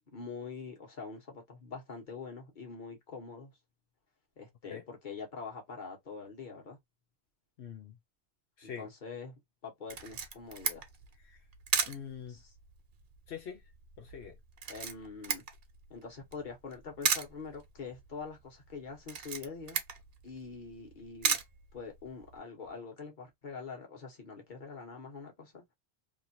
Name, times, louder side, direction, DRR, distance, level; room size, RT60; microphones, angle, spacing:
voice 1, 0.1-3.5 4.4-6.8 8.8-10.9 12.3-12.5 14.7-15.4 15.9-19.8 20.2-21.4 21.7-25.6, left 5 dB, 45° left, 1.3 m, -44 dB
voice 2, 7.6-7.9 8.6-8.9 11.3-11.4 11.9-12.4 13.3-13.6 14.0-14.3, left 7 dB, 80° left, 1.0 m, -44 dB
Camera, 9.9-22.4, right 6 dB, 65° right, 0.9 m, -37 dB
2.9 x 2.5 x 2.7 m
omnidirectional pair, 1.1 m